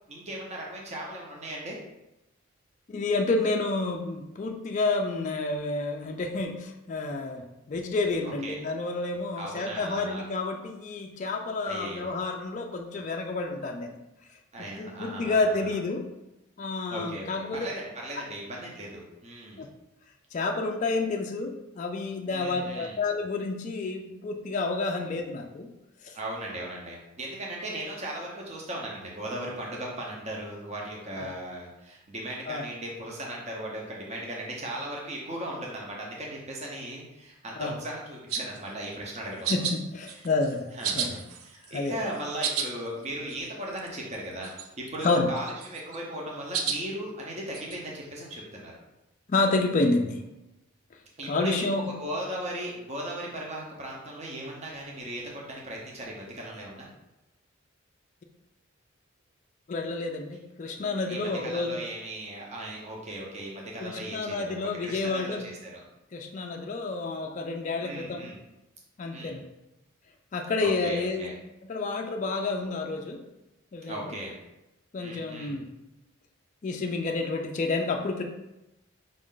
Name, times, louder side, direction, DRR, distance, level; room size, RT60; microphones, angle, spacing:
voice 1, 0.1-1.8 8.2-8.6 9.4-10.2 11.7-12.1 14.5-15.7 16.9-19.7 22.3-23.0 26.1-39.6 40.1-40.3 40.7-44.5 44.8-48.7 51.2-51.7 52.0-56.9 61.1-65.8 67.8-68.4 69.1-69.4 70.6-71.3 73.9-74.3 75.0-75.6, right 1 dB, 30° right, -2 dB, 0.7 m, -37 dB
voice 2, 2.9-14.0 14.8-16.0 16.6-17.7 19.6-19.7 20.3-25.7 26.0-26.2 31.2-31.3 32.5-32.7 37.6-37.8 39.5-40.7 40.9-41.2 41.7-42.0 45.0-45.3 49.3-50.2 51.3-51.9 59.7-61.8 63.8-65.4 66.1-68.3 69.0-69.4 70.3-71.3 71.7-73.2 73.7-74.2 74.9-75.7 76.6-78.2, left 3 dB, 35° left, 3 dB, 0.3 m, -29 dB
sound 1, 38.3-38.6 39.5-39.8 40.1-40.5 40.8-41.8 42.2-42.7 43.0-43.1 43.3-43.4 43.8-44.2 44.4-44.9 45.4-46.0 46.5-46.8 47.5-47.8, right 6 dB, 80° right, 0.5 m, -31 dB
5.2 x 2.5 x 3.7 m, 0.95 s
head